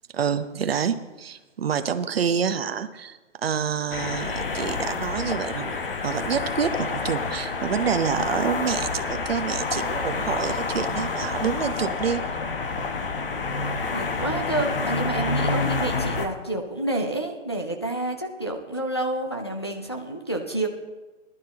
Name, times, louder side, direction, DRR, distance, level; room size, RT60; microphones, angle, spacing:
voice 1, 0.1-12.2, right 7 dB, 50° right, 10 dB, 0.9 m, -27 dB
sound 1, 3.9-16.3, left 4 dB, 45° left, 1.0 m, -28 dB
voice 2, 13.9-20.7, right 2 dB, 20° left, 1 dB, 0.5 m, -29 dB
20.0 x 11.5 x 2.9 m, 1.2 s
hypercardioid pair, 175°, 38 cm